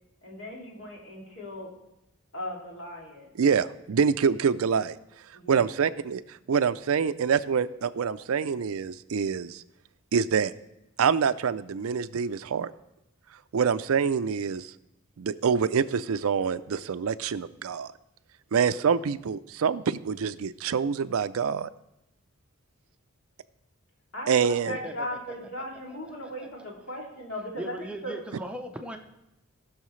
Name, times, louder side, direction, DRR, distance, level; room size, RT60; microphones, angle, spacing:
voice 1, 0.2-1.7 2.3-3.3 5.3-5.7 24.1-27.7 28.0-28.1, left 1 dB, 70° left, -2 dB, 2.7 m, -37 dB
voice 2, 3.4-5.0 5.5-6.2 6.5-9.6 10.1-10.5 11.0-12.7 13.5-14.7 15.2-17.9 18.5-21.7 24.3-24.8, right 6 dB, 80° right, 14 dB, 0.4 m, -26 dB
voice 3, 24.7-25.1 26.2-26.5 27.6-29.0, equal, 5° right, 4 dB, 0.5 m, -38 dB
19.0 x 6.4 x 3.2 m, 0.88 s
head